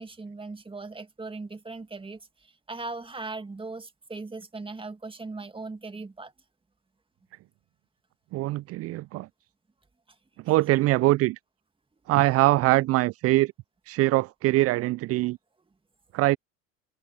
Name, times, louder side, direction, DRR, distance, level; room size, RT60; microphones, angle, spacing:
voice 1, 0.0-6.3, right 3 dB, 10° right, 2.5 m, -39 dB
voice 2, 8.3-9.3 10.5-11.4 12.1-13.5 13.9-15.4 16.1-16.4, right 18 dB, 35° right, 0.6 m, -23 dB
hypercardioid pair, 80°, 42 cm